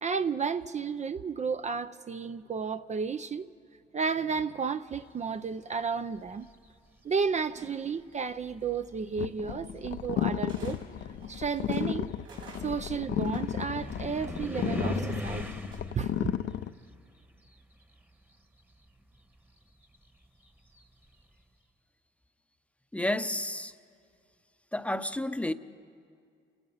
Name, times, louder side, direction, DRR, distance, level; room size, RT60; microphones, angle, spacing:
voice 1, 0.0-3.5 3.9-6.4 7.0-10.8 11.3-12.1 12.6-15.5 15.9-16.3, right 5 dB, 35° right, 0.6 m, -32 dB
sound 1, 6.1-6.7 7.7-7.8 8.4-18.3 18.5-21.2, equal, 10° right, 1.3 m, -42 dB
sound 2, 7.5-8.1 9.2-9.3 10.5-10.8 11.2-14.3 15.7-16.2, right 3 dB, 80° right, 6.0 m, -52 dB
sound 3, 9.2-16.7, left 10 dB, 65° left, 0.6 m, -33 dB
voice 2, 22.9-23.7 24.7-25.5, left 1 dB, 5° left, 0.8 m, -31 dB
30.0 x 16.0 x 5.7 m
cardioid pair, 90°, 20 cm